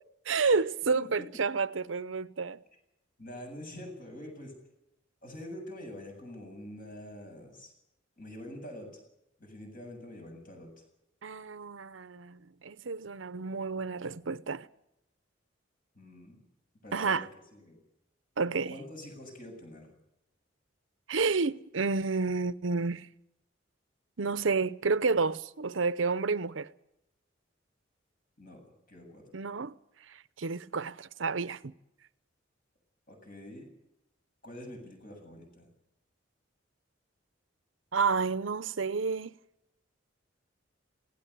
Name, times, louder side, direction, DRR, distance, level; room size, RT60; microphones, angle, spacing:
voice 1, 0.3-2.6 11.2-14.7 16.9-17.3 18.4-18.8 21.1-23.1 24.2-26.7 29.3-29.8 30.1-31.7 37.9-39.3, right 4 dB, 80° right, 0.8 m, -30 dB
voice 2, 0.9-1.3 3.2-4.5 5.2-7.7 8.2-8.9 9.4-10.7 15.9-16.4 16.8-17.3 17.5-17.8 18.7-19.9 28.4-28.6 28.9-29.2 33.1-33.7 34.4-35.7, left 1 dB, 45° left, 7.9 m, -45 dB
19.0 x 17.5 x 8.3 m
head